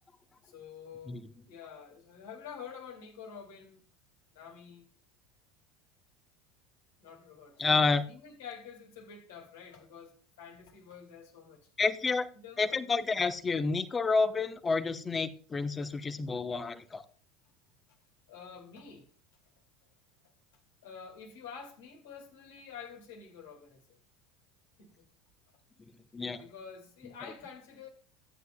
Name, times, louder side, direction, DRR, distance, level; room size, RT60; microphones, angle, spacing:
voice 1, 0.4-3.8 4.3-4.9 7.0-11.7 12.3-12.8 18.3-19.1 20.8-24.0 24.8-25.0 26.4-27.9, left 6 dB, 70° left, 2.3 m, -48 dB
voice 2, 7.6-8.0 11.8-12.3 12.6-17.0 26.1-26.4, left 4 dB, 25° left, 0.9 m, -29 dB
14.0 x 9.3 x 2.3 m
hypercardioid pair, 75°, 0 cm